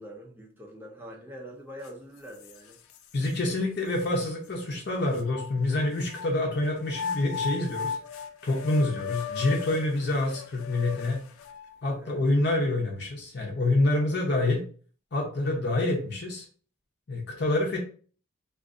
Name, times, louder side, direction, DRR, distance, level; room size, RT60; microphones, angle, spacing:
voice 1, 0.0-2.8 8.7-8.9 12.0-12.2, equal, 10° right, -1 dB, 0.5 m, -44 dB
sound 1, 1.8-1.9 2.4-3.3 4.0-4.1 5.2-6.3 6.9-11.8, left 6 dB, 85° left, 0.4 m, -36 dB
voice 2, 3.1-8.0 8.4-11.2 11.8-14.6 15.1-16.5 17.1-17.8, left 2 dB, 50° left, 0 dB, 0.7 m, -27 dB
2.5 x 2.5 x 3.6 m, 0.41 s
head